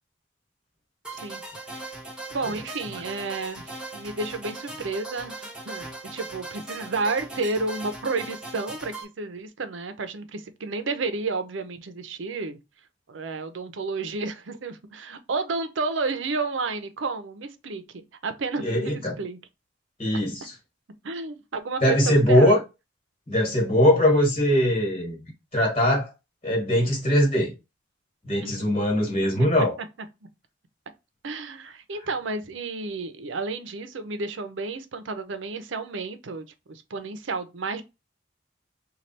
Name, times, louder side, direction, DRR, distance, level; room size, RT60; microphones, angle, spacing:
sound 1, 1.0-9.0, right 2 dB, 5° right, 0.8 m, -39 dB
voice 1, 2.3-12.6 13.1-19.4 21.0-22.5 28.4-28.7 31.2-37.8, right 3 dB, 90° right, 0.6 m, -31 dB
voice 2, 18.6-19.1 20.0-20.5 21.8-22.6 23.3-25.2 25.5-26.1 26.4-27.5 28.2-29.8, left 1 dB, 30° left, 1.3 m, -21 dB
3.2 x 2.3 x 4.1 m
head